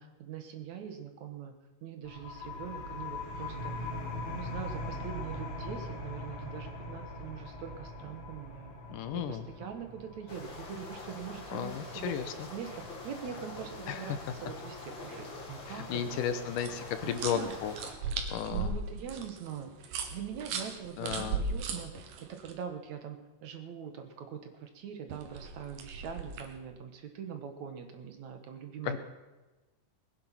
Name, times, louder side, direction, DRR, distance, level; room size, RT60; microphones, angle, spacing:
voice 1, 0.0-1.5 1.8-3.9 4.3-8.8 9.1-14.1 14.4-16.0 17.0-17.5 18.5-29.0, right 8 dB, 65° right, 6 dB, 2.5 m, -43 dB
sound 1, 2.0-13.4, left 2 dB, 60° left, 4.4 m, -41 dB
voice 2, 8.9-9.4 11.5-12.3 13.9-14.0 15.7-17.7 18.3-18.7 21.0-21.4 28.8-29.0, left 8 dB, 80° left, 9 dB, 2.6 m, -34 dB
sound 2, 10.3-17.9, left 2 dB, 40° left, 2.6 m, -45 dB
sound 3, 16.6-22.5 25.1-26.6, right 4 dB, 85° right, 3.1 m, -37 dB
20.0 x 10.0 x 5.8 m, 1.2 s
omnidirectional pair, 3.8 m